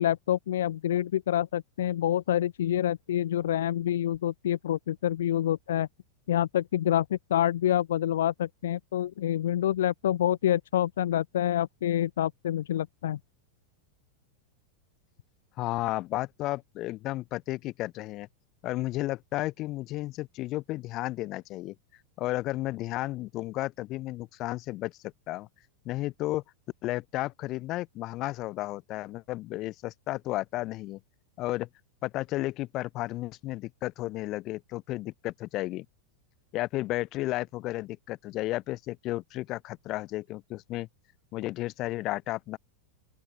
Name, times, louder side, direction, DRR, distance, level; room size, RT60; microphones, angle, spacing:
voice 1, 0.0-5.9 6.3-13.2, left 11 dB, 60° left, 1.2 m, -27 dB
voice 2, 15.6-18.3 18.6-21.7 22.2-25.5 25.8-26.4 26.8-31.0 31.4-31.7 32.0-35.8 36.5-40.9 41.3-42.6, left 17 dB, 35° left, 5.1 m, -33 dB
open air
figure-of-eight pair, 90°, 0 cm